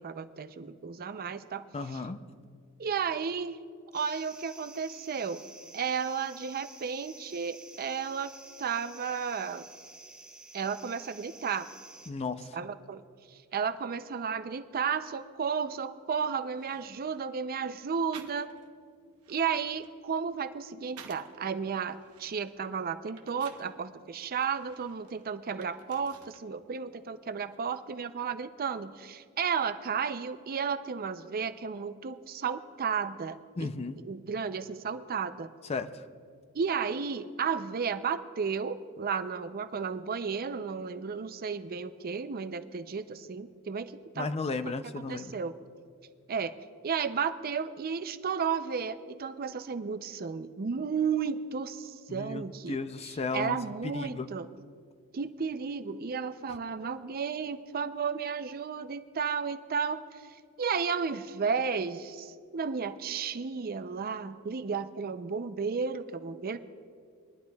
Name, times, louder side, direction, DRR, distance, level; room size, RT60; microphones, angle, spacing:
voice 1, 0.0-1.7 2.8-3.6 3.9-5.4 5.7-8.3 8.6-9.7 10.5-11.7 12.5-13.0 13.5-18.5 19.3-33.7 34.0-35.5 36.5-44.8 45.1-45.5 46.3-46.5 46.8-52.8 53.3-54.5 55.1-60.1 60.6-66.6, right 6 dB, 45° right, 11 dB, 0.5 m, -33 dB
voice 2, 1.7-2.2 12.1-12.6 33.6-34.0 35.6-36.0 44.2-45.4 52.1-54.3, left 3 dB, 30° left, 11 dB, 0.4 m, -35 dB
sound 1, 3.9-12.1, right 2 dB, 5° right, 1.1 m, -51 dB
sound 2, 16.1-16.2 16.5-17.3 18.1-18.7 19.1-21.4 21.9-23.7 24.3-26.5 26.8-27.6, right 7 dB, 90° right, 0.9 m, -54 dB
22.0 x 11.5 x 2.3 m, 2.2 s
head